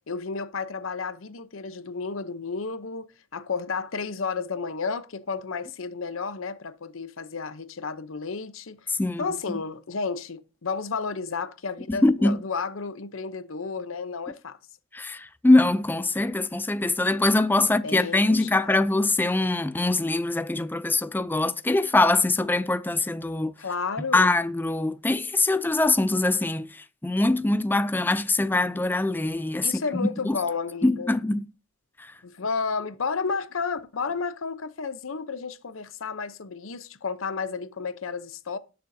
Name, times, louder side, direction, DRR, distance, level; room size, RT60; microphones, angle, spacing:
voice 1, 0.1-3.1 3.3-14.6 17.6-18.5 23.6-24.3 29.6-31.1 32.2-38.6, left 5 dB, 80° left, 0.8 m, -32 dB
voice 2, 11.9-12.4 14.9-23.5 24.1-26.7 27.0-29.7 30.3-30.4 30.8-31.5, left 2 dB, 10° left, 0.4 m, -23 dB
18.0 x 6.7 x 2.7 m
head